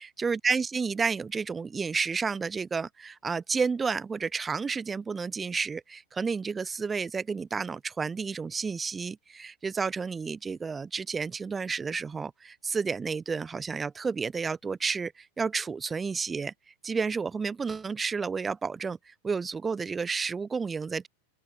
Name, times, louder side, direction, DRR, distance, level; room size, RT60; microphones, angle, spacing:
voice 1, 0.0-16.5 16.8-21.1, right 5 dB, 15° right, 1.1 m, -31 dB
open air
figure-of-eight pair, 90°, 0 cm